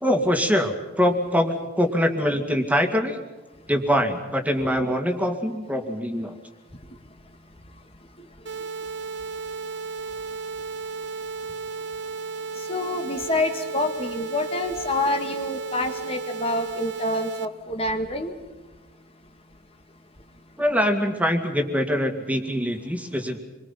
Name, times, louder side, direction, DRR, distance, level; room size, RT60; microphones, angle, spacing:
voice 1, 0.0-3.2 3.7-6.4 20.6-23.4, equal, 5° right, 5 dB, 2.3 m, -23 dB
sound 1, 8.5-17.5, right 4 dB, 55° right, 1.0 m, -34 dB
voice 2, 12.7-18.3, left 2 dB, 25° left, 5 dB, 1.8 m, -27 dB
27.5 x 23.5 x 5.8 m, 1.2 s
head